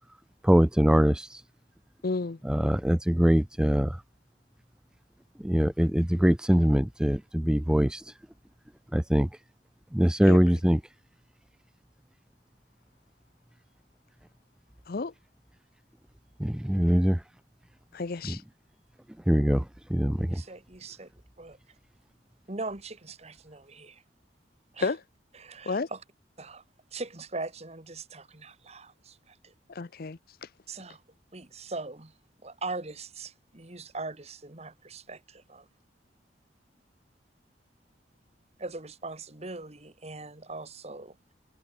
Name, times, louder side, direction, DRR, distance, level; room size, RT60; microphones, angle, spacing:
voice 1, 0.4-1.4 2.4-4.0 5.4-8.1 8.9-9.3 9.9-10.8 16.4-17.2 18.3-18.4 19.3-20.4, equal, 5° right, 0.3 m, -23 dB
voice 2, 2.0-2.4 10.3-10.4 14.9-15.1 17.9-18.4 24.8-25.0 25.7-25.9 29.7-30.2, left 3 dB, 55° left, 0.7 m, -31 dB
voice 3, 20.3-21.1 21.4-21.6 22.5-24.0 24.7-24.9 25.3-26.0 26.4-26.6 26.9-29.5 30.7-31.0 31.3-32.1 32.4-35.7 38.6-41.3, right 3 dB, 35° right, 2.1 m, -40 dB
head